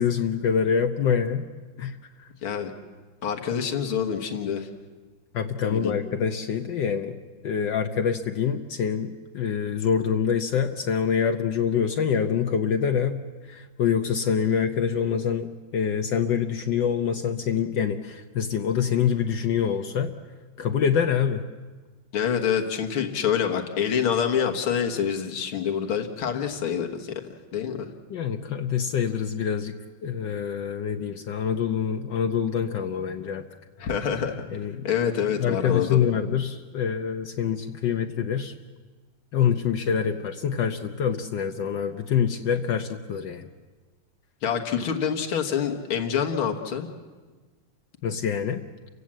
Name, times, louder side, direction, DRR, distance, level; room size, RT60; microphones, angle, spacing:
voice 1, 0.0-1.5 1.8-2.3 5.3-7.2 7.4-20.1 20.6-21.4 28.1-29.7 30.0-33.5 34.5-34.9 35.2-38.5 39.3-43.5 48.0-48.6, left 7 dB, 65° left, 6 dB, 1.4 m, -25 dB
voice 2, 2.4-2.7 3.2-4.7 5.6-6.0 22.1-27.2 27.5-27.9 33.8-34.4 34.8-36.1 44.4-46.9, left 7 dB, 85° left, 3 dB, 2.3 m, -26 dB
29.5 x 16.5 x 7.5 m, 1.4 s
omnidirectional pair, 2.2 m